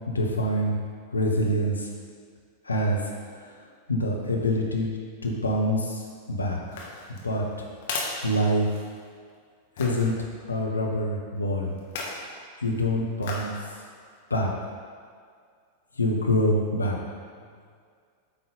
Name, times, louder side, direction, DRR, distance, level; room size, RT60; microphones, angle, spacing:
voice 1, 0.1-0.7 1.1-1.9 2.7-3.0 3.9-5.0 5.2-6.0 6.3-6.6 7.1-7.4 8.2-8.7 9.8-10.1 10.5-11.7 12.6-13.5 14.3-14.5 16.0-17.0, equal, 80° left, -1 dB, 0.9 m, -25 dB
sound 1, 6.6-9.1 9.8-10.1 11.8-12.3 13.2-13.6 14.1-14.2, left 3 dB, 55° left, 1.1 m, -35 dB
8.1 x 3.9 x 3.8 m, 2.1 s
figure-of-eight pair, 90°, 0 cm